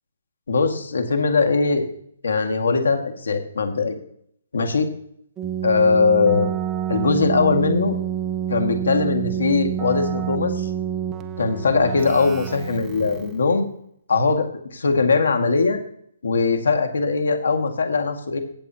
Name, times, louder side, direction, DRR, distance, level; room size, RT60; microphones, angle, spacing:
voice 1, 0.5-1.9 2.2-4.0 4.5-4.9 5.6-6.5 6.9-8.0 8.5-10.7 11.4-13.7 14.1-15.8 16.2-18.4, left 4 dB, 90° left, 5 dB, 2.0 m, -20 dB
Keyboard (musical), 5.4-13.5, right 10 dB, 10° right, 0.5 m, -28 dB
16.5 x 7.6 x 2.9 m, 0.66 s
hypercardioid pair, 170°, 0 cm